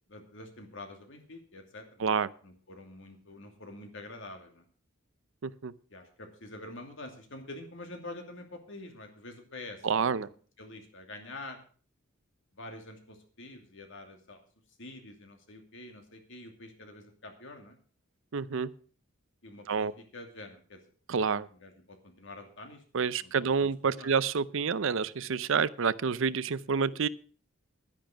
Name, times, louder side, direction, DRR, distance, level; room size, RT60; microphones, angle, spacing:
voice 1, 0.1-2.1 2.4-4.6 5.9-10.3 10.6-11.6 12.6-14.4 14.8-17.8 19.4-20.8 21.6-24.1, left 2 dB, 60° left, 5 dB, 2.6 m, -47 dB
voice 2, 2.0-2.3 5.4-5.7 9.8-10.3 18.3-18.7 19.7-19.9 21.1-21.5 22.9-27.1, right 5 dB, 65° right, 18 dB, 0.6 m, -28 dB
11.0 x 10.5 x 5.9 m, 0.43 s
head